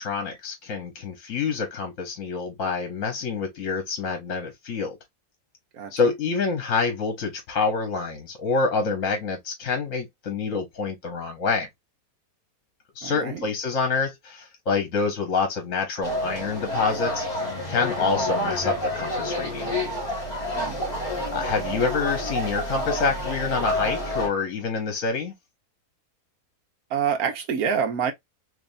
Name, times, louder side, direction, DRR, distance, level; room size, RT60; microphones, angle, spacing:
voice 1, 0.0-5.0 5.9-11.7 13.0-17.3 17.7-19.7 21.3-25.3, left 4 dB, 60° left, 1.3 m, -27 dB
voice 2, 13.0-13.4 20.5-20.8 21.1-21.3 26.9-28.1, right 7 dB, 70° right, 1.4 m, -27 dB
sound 1, 16.0-24.3, left 1 dB, 25° left, 2.3 m, -29 dB
3.5 x 3.2 x 2.5 m
omnidirectional pair, 1.7 m